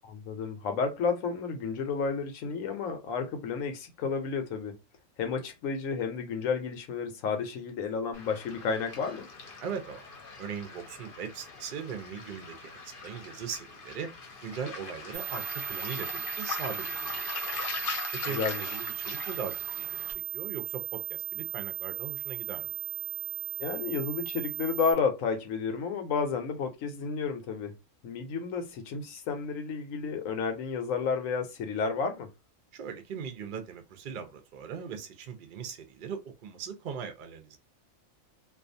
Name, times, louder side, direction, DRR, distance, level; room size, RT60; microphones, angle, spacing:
voice 1, 0.0-4.7 5.2-9.3 18.3-18.7 23.6-27.7 28.0-32.3, left 5 dB, 85° left, 1.1 m, -31 dB
Waves surf, 8.1-20.1, left 4 dB, 50° left, 0.8 m, -40 dB
voice 2, 9.6-10.0 10.4-14.1 14.4-17.6 18.2-22.8 32.7-37.6, right 7 dB, 55° right, 0.6 m, -40 dB
sound 1, 15.1-24.9, right 16 dB, 25° left, 0.5 m, -37 dB
2.4 x 2.3 x 2.6 m
omnidirectional pair, 1.4 m